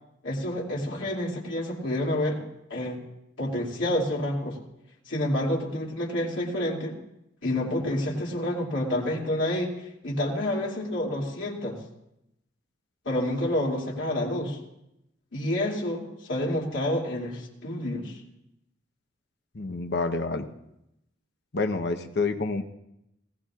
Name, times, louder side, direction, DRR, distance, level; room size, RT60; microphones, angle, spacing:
voice 1, 0.2-2.4 2.7-3.0 3.4-4.6 5.1-7.0 7.4-9.7 10.0-11.8 13.0-14.6 15.3-18.2, left 1 dB, 85° left, -4 dB, 2.7 m, -28 dB
voice 2, 19.5-20.5 21.5-22.6, left 3 dB, 60° left, 6 dB, 0.9 m, -28 dB
19.5 x 16.5 x 2.5 m, 0.84 s
head